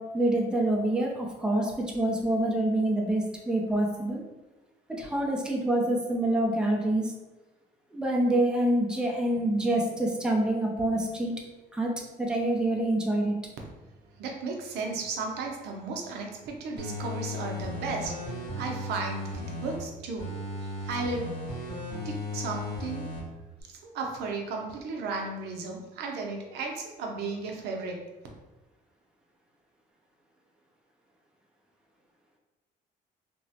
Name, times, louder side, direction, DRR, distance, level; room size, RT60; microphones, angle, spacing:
voice 1, 0.0-4.2 4.9-7.1 7.9-11.3 11.7-11.9 12.2-13.3, right 1 dB, 5° right, -1 dB, 0.5 m, -26 dB
voice 2, 14.1-20.3 20.6-21.4 22.0-23.1 23.6-28.0, right 3 dB, 75° right, 1 dB, 0.6 m, -35 dB
sound 1, 16.8-19.8 20.2-23.2 23.6-23.7, left 1 dB, 75° left, 1.3 m, -36 dB
2.9 x 2.0 x 2.7 m, 1.1 s
cardioid pair, 110°, 17 cm